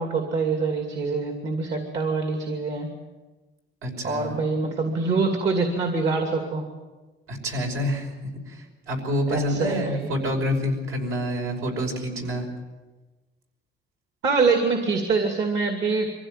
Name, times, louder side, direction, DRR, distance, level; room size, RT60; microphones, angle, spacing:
voice 1, 0.0-2.9 4.0-6.6 9.3-10.1 14.2-16.1, right 4 dB, 55° right, 3 dB, 2.7 m, -25 dB
voice 2, 3.8-4.4 7.3-12.5, equal, 75° right, 2 dB, 5.7 m, -28 dB
24.0 x 16.0 x 9.1 m, 1.2 s
cardioid pair, 140°, 21 cm